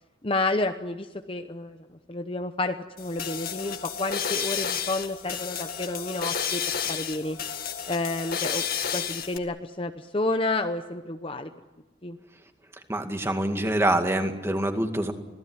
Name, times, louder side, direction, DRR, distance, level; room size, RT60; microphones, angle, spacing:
voice 1, 0.2-1.8 2.1-7.4 7.9-8.6 8.9-11.5 12.0-12.2, left 2 dB, 25° left, 6 dB, 0.9 m, -30 dB
sound 1, 3.0-9.4, left 8 dB, 50° left, 2.0 m, -31 dB
voice 2, 12.9-15.1, right 1 dB, 15° right, 5 dB, 2.1 m, -25 dB
26.0 x 18.0 x 9.7 m, 1.2 s
head